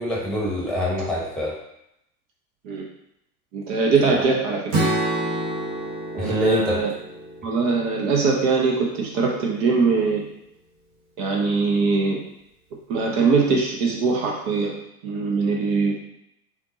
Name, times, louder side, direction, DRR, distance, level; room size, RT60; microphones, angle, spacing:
voice 1, 0.0-1.5 4.1-4.2 6.2-6.8, left 1 dB, ahead, -4 dB, 1.5 m, -25 dB
voice 2, 3.5-4.6 6.1-6.9 7.4-10.3 11.2-12.2 12.9-14.7 15.0-16.0, right 4 dB, 55° right, -1 dB, 1.1 m, -22 dB
Strum, 4.7-8.9, right 1 dB, 40° right, 1.5 m, -28 dB
4.4 x 4.3 x 2.8 m, 0.79 s
hypercardioid pair, 90°, 47 cm